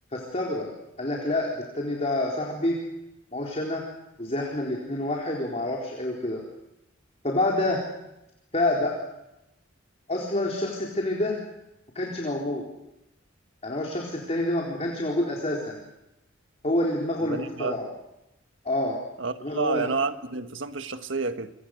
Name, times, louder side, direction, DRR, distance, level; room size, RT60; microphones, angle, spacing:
voice 1, 0.1-0.7 1.0-2.8 3.3-3.8 4.2-6.4 7.2-7.8 8.5-8.9 10.1-11.4 11.9-12.6 13.6-15.8 16.6-17.9 18.6-19.0 19.4-19.9, left 1 dB, 35° left, -2 dB, 4.1 m, -27 dB
voice 2, 17.2-17.8 19.2-21.5, right 4 dB, 70° right, 8 dB, 1.6 m, -30 dB
28.5 x 25.0 x 6.6 m, 0.90 s
head